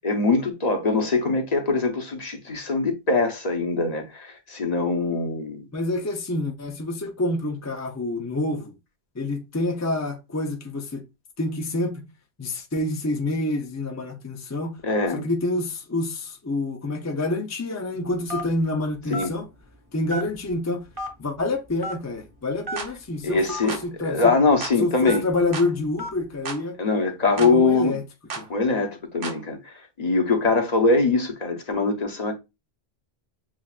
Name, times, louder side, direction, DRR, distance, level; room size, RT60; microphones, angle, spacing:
voice 1, 0.0-5.7 14.8-15.2 19.1-19.3 23.2-23.8 24.0-25.2 26.8-28.0 28.5-32.3, left 3 dB, 45° left, 0.9 m, -23 dB
voice 2, 5.7-8.7 9.2-11.0 11.4-12.0 12.4-14.7 15.1-19.5 19.9-20.9 21.2-24.3 24.8-26.8 27.4-28.0 28.3-28.5, left 2 dB, 20° left, 0.5 m, -27 dB
Telephone, 18.3-18.6 19.1-19.3 20.1-20.5 21.0-21.1 21.8-22.0 22.6-22.8 23.5-23.6 24.2-24.4 25.1-25.3 26.0-26.2, equal, 20° right, 1.1 m, -31 dB
sound 1, 22.8-22.9 23.7-23.9 24.6-24.8 25.5-25.7 26.5-26.6 27.4-27.6 28.3-28.5 29.2-29.4, right 4 dB, 60° right, 0.9 m, -33 dB
7.3 x 2.5 x 2.4 m
omnidirectional pair, 1.1 m